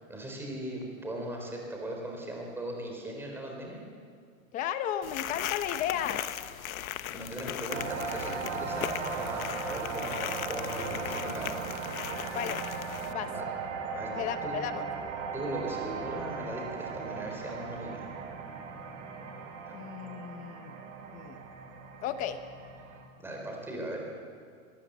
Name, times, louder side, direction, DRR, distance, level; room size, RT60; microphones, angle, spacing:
voice 1, 0.1-3.8 7.1-11.6 12.1-12.4 13.2-13.5 13.9-14.1 14.4-14.6 15.3-18.1 23.2-24.0, right 1 dB, 5° right, 0 dB, 4.0 m, -38 dB
voice 2, 4.5-6.2 12.3-12.6 13.1-13.3 14.2-14.9 19.7-20.8 21.1-21.4 22.0-22.4, left 10 dB, 20° left, 10 dB, 0.8 m, -34 dB
sound 1, 5.0-13.1, left 11 dB, 90° left, 1.1 m, -38 dB
sound 2, 7.7-23.0, right 5 dB, 60° right, 4.8 m, -38 dB
22.5 x 19.0 x 8.1 m, 2.2 s
supercardioid pair, 165°, 41 cm